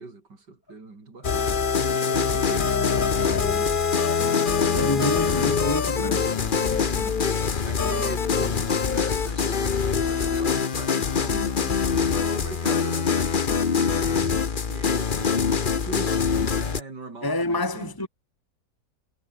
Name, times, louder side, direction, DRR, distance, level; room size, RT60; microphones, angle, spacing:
voice 1, 0.0-1.6 1.9-5.1 6.4-7.2 7.6-15.5 15.8-18.1, right 3 dB, 75° right, 5.0 m, -40 dB
sound 1, 1.2-16.8, left 5 dB, 35° left, 1.1 m, -24 dB
sound 2, 2.5-3.7 4.2-5.5 6.0-7.3 7.8-9.0 9.5-10.6 11.1-12.2 12.7-13.5, left 9 dB, 90° left, 1.9 m, -39 dB
voice 2, 4.7-6.9 17.2-18.1, left 1 dB, 10° left, 2.4 m, -28 dB
omnidirectional pair, 1.8 m